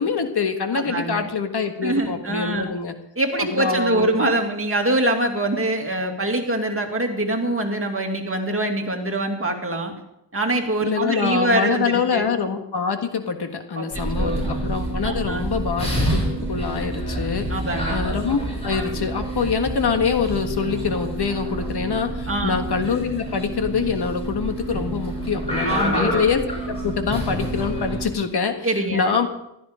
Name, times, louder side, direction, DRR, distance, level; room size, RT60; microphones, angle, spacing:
voice 1, 0.0-2.9 3.4-4.2 10.8-17.6 17.9-29.3, left 5 dB, 65° left, 6 dB, 1.6 m, -25 dB
voice 2, 0.7-1.3 1.8-2.7 3.2-9.9 10.3-12.3 13.7-13.8 14.2-14.5 15.0-15.4 17.5-18.0 22.3-22.5 25.6-26.2 28.6-29.1, right 1 dB, 30° right, 3 dB, 2.4 m, -24 dB
sound 1, 13.9-28.1, right 1 dB, 15° left, 6.8 m, -28 dB
15.5 x 12.5 x 5.1 m, 0.82 s
wide cardioid pair, 90°, 43 cm